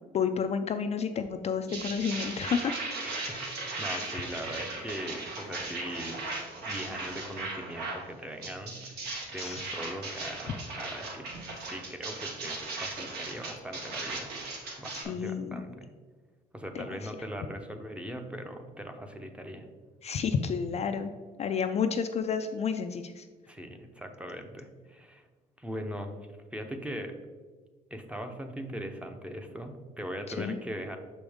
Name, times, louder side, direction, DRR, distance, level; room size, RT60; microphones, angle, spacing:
voice 1, 0.1-2.7 3.2-4.6 9.4-9.6 14.9-15.6 16.7-17.1 20.0-21.1 21.4-23.2 30.3-30.6, left 6 dB, 40° left, 7 dB, 0.4 m, -31 dB
sound 1, 1.7-8.0 8.4-15.0, right 3 dB, 75° right, 1.5 m, -37 dB
voice 2, 3.8-6.2 6.7-8.9 9.3-11.2 11.6-14.3 14.8-15.9 16.5-19.7 23.5-25.3 25.6-26.1 26.5-27.1 27.9-31.0, equal, 5° right, 5 dB, 0.7 m, -40 dB
6.1 x 5.1 x 3.5 m, 1.4 s
cardioid pair, 110°, 17 cm